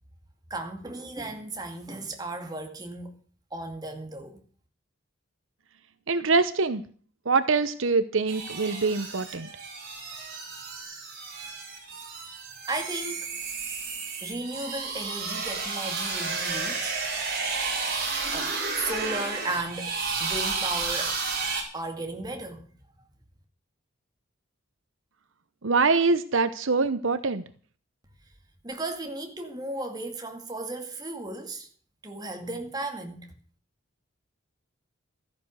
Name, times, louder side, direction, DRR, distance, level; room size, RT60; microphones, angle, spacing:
voice 1, 0.5-3.2 3.5-4.4 12.7-13.4 14.2-17.0 18.3-21.2 21.7-22.8 28.6-31.7 32.0-33.3, right 2 dB, 20° right, 2.2 m, -35 dB
voice 2, 6.1-6.8 7.2-9.5 25.6-27.4, right 4 dB, 75° right, 0.9 m, -24 dB
sound 1, 8.3-21.6, right 4 dB, 50° right, 5.3 m, -32 dB
14.0 x 10.5 x 6.5 m
head